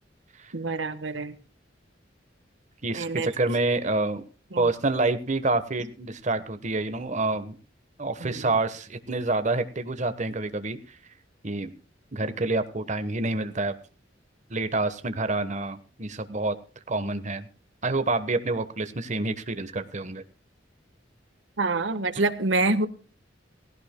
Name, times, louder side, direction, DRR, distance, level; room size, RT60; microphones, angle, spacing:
voice 1, 0.5-1.3 3.0-3.3 4.5-4.7 8.2-8.5 21.6-22.9, right 3 dB, 85° right, 11 dB, 1.3 m, -26 dB
voice 2, 2.8-4.2 4.6-7.5 8.0-10.8 11.4-11.7 12.1-13.8 14.5-16.5 16.9-17.5 17.8-20.2, right 2 dB, 40° right, 10 dB, 1.2 m, -27 dB
18.5 x 16.5 x 2.2 m, 0.36 s
head